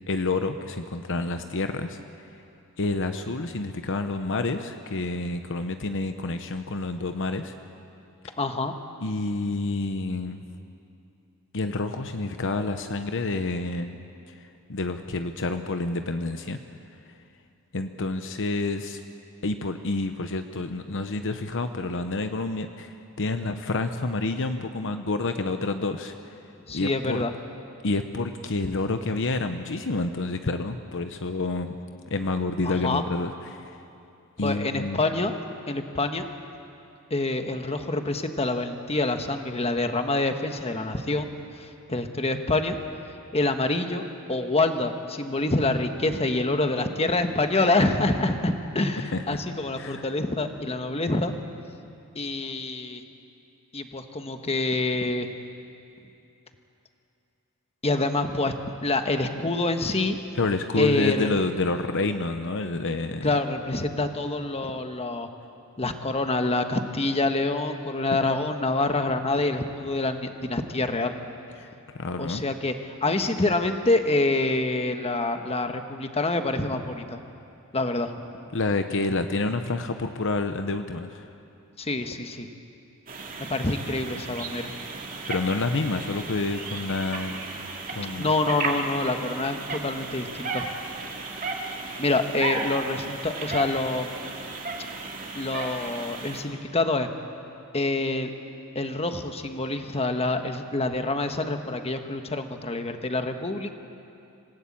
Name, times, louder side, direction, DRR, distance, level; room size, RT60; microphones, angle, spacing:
voice 1, 0.1-2.0 2.8-7.5 9.0-10.5 11.5-14.0 14.3-16.6 17.7-19.0 19.4-26.3 26.7-27.2 27.8-31.8 32.1-33.8 34.4-35.0 49.1-49.4 49.7-50.0 60.4-63.3 71.6-72.4 78.5-81.3 85.3-87.3 87.9-88.3, left 3 dB, 60° left, 8 dB, 0.9 m, -28 dB
voice 2, 8.4-8.7 26.7-27.3 32.6-33.0 34.4-35.3 35.7-36.3 37.1-41.3 41.6-42.8 43.3-51.3 52.1-53.0 53.7-55.3 57.8-58.5 58.8-60.2 60.8-61.3 63.2-65.3 65.8-71.1 72.2-77.2 77.7-78.1 81.8-82.5 83.4-84.7 88.2-90.7 92.0-94.1 95.3-97.1 97.7-98.3 98.7-103.7, left 2 dB, 30° left, 6 dB, 1.3 m, -26 dB
sound 1, 83.1-96.4, right 3 dB, 40° right, 2.5 m, -35 dB
27.0 x 17.0 x 8.7 m, 2.7 s
head